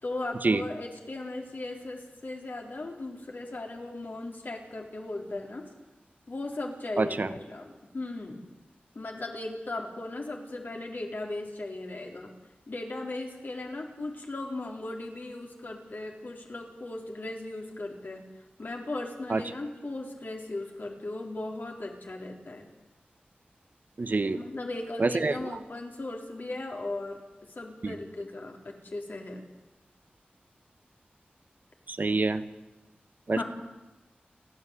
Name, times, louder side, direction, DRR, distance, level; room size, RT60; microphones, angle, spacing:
voice 1, 0.0-5.7 6.3-8.4 8.9-12.3 12.7-18.2 18.6-22.7 24.4-27.2 27.5-29.4 33.3-33.4, left 2 dB, 65° left, 1 dB, 4.0 m, -37 dB
voice 2, 7.0-7.3 19.3-19.4 24.0-24.4 25.0-25.3 27.8-28.0 31.9-32.4 33.3-33.4, right 3 dB, 55° right, 11 dB, 1.1 m, -26 dB
30.0 x 10.5 x 8.4 m, 1.1 s
wide cardioid pair, 55°, 4 cm